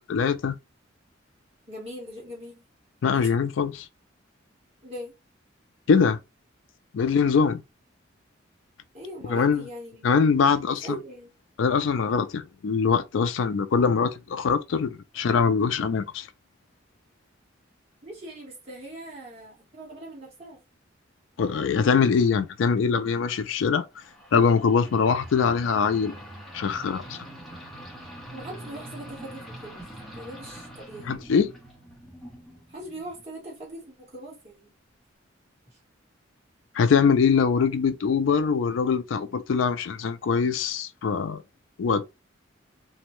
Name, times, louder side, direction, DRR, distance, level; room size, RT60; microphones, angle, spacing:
voice 1, 0.1-0.6 3.0-3.9 5.9-6.2 6.9-7.6 9.3-9.7 10.0-10.9 11.6-16.3 21.4-23.8 24.3-26.2 26.5-27.2 31.1-31.5 36.8-41.4 41.8-42.1, left 6 dB, 75° left, 0.4 m, -23 dB
voice 2, 1.7-2.6 4.8-5.1 8.9-10.1 10.6-11.3 18.0-20.6 28.3-29.9 30.1-31.2 32.7-34.7, right 1 dB, 30° right, 1.4 m, -41 dB
sound 1, 24.0-33.3, right 1 dB, ahead, 0.8 m, -44 dB
2.6 x 2.1 x 3.0 m
head